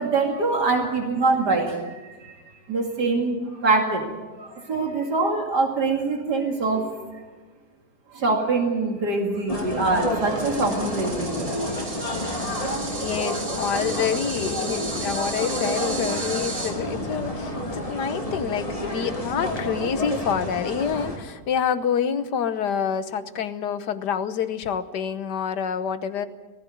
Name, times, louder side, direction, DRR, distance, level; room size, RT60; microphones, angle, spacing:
voice 1, 0.0-2.4 2.7-7.2 8.1-11.6, right 3 dB, 80° right, 2 dB, 3.0 m, -24 dB
sound 1, 9.5-21.2, left 1 dB, 20° left, 3.2 m, -29 dB
sound 2, 10.4-16.7, right 3 dB, 65° right, 3.4 m, -35 dB
voice 2, 13.0-26.3, left 7 dB, 90° left, 11 dB, 1.7 m, -27 dB
18.5 x 15.5 x 9.3 m, 1.2 s
omnidirectional pair, 1.7 m